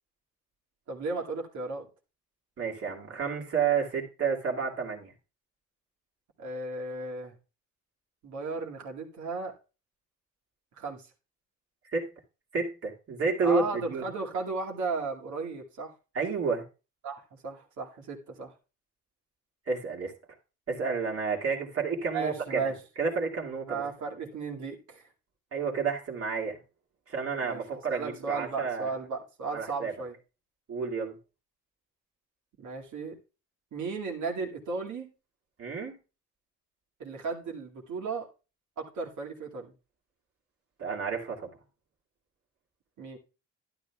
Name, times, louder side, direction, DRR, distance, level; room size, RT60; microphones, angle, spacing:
voice 1, 0.9-1.9 6.4-7.4 8.2-9.6 10.8-11.1 13.4-15.9 17.0-18.5 22.1-22.8 23.7-25.1 27.4-30.2 32.6-33.2 33.7-35.1 37.0-38.3 38.8-39.7 43.0-43.2, right 4 dB, 70° right, 2.2 m, -35 dB
voice 2, 2.6-5.1 11.8-12.1 12.5-14.0 16.1-16.6 19.7-20.1 20.7-22.7 23.0-23.8 25.5-26.6 27.1-28.9 29.5-29.9 30.7-31.2 35.6-36.0 40.8-41.6, right 5 dB, 50° right, 2.3 m, -30 dB
12.0 x 10.5 x 2.3 m
cardioid pair, 90°, 30 cm